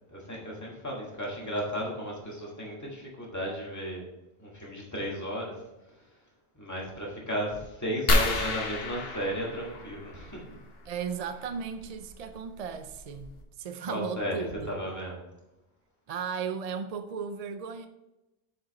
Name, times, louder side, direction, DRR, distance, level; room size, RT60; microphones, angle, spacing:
voice 1, 0.1-4.0 4.4-5.6 6.6-10.6 13.8-14.3 14.6-15.1, equal, 15° left, -3 dB, 1.9 m, -34 dB
sound 1, 8.1-10.5 12.1-12.2 12.8-12.9 13.2-13.4, left 2 dB, 60° left, 1.4 m, -29 dB
voice 2, 10.8-14.8 16.1-17.9, right 6 dB, 50° right, 8 dB, 0.5 m, -36 dB
7.6 x 5.6 x 4.2 m, 0.98 s
omnidirectional pair, 1.1 m